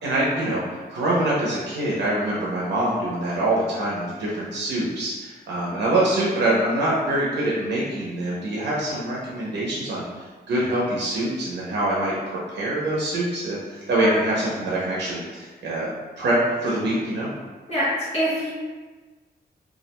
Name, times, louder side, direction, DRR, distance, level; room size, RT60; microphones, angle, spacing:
voice 1, 0.0-0.6 0.9-17.3, right 1 dB, 90° right, -6 dB, 0.6 m, -25 dB
voice 2, 18.1-18.5, right 1 dB, 40° left, -11 dB, 0.7 m, -24 dB
2.3 x 2.1 x 2.8 m, 1.4 s
wide cardioid pair, 175°, 18 cm